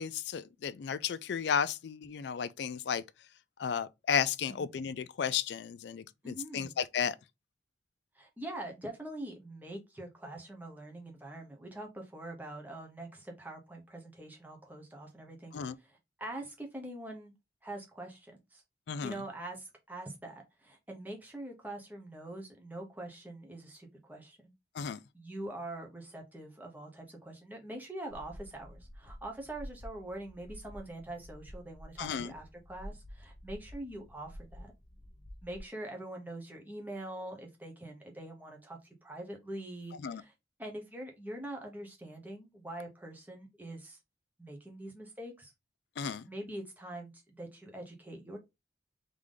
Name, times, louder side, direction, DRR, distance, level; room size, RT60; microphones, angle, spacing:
voice 1, 0.0-3.0 3.6-7.2 15.5-15.8 18.9-19.2 24.7-25.0 32.0-32.3 40.0-40.2 46.0-46.3, left 7 dB, 70° left, 0.4 m, -33 dB
voice 2, 6.2-6.7 8.1-17.3 17.6-18.6 19.0-24.5 25.1-34.7 35.4-40.3 40.6-44.0 44.4-45.5 46.3-48.4, right 1 dB, 10° right, 1.0 m, -44 dB
sound 1, 28.1-35.6, equal, 25° left, 1.2 m, -50 dB
3.7 x 3.5 x 3.7 m
head